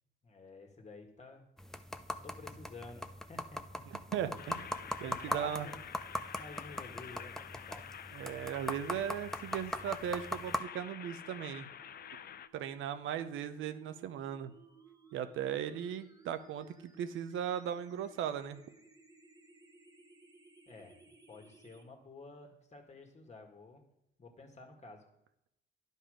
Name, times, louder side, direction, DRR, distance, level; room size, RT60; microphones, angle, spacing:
voice 1, 0.2-1.5 2.2-3.8 5.0-5.8 6.3-7.9 20.7-23.8 24.2-25.0, left 3 dB, 35° left, 4 dB, 1.8 m, -52 dB
sound 1, 1.6-10.6, left 1 dB, ahead, 0.5 m, -41 dB
voice 2, 4.1-4.7 5.0-5.7 8.1-11.7 12.5-14.5 15.1-18.6, right 9 dB, 80° right, 10 dB, 0.7 m, -37 dB
sound 2, 4.4-12.5, left 9 dB, 50° left, 0.5 m, -48 dB
sound 3, 11.8-21.8, right 4 dB, 20° right, 1.2 m, -60 dB
10.5 x 5.4 x 5.0 m, 0.80 s
cardioid pair, 90°, 20 cm